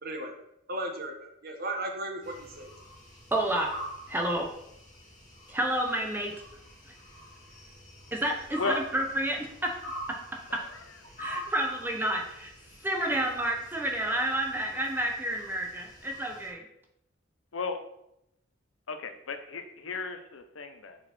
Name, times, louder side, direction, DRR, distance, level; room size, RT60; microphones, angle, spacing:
voice 1, 0.0-0.3 0.7-2.7, right 1 dB, 50° right, 3 dB, 1.1 m, -35 dB
sound 1, 2.2-16.5, equal, 40° left, 2.4 m, -45 dB
voice 2, 3.3-3.7 4.1-4.5 5.5-6.3 8.1-9.7 10.1-10.2 10.5-10.6 11.2-12.5 12.8-16.6, right 1 dB, 10° right, 1 dB, 1.0 m, -30 dB
voice 3, 18.9-21.0, left 4 dB, 85° left, 7 dB, 0.8 m, -34 dB
6.4 x 4.6 x 4.4 m, 0.79 s
head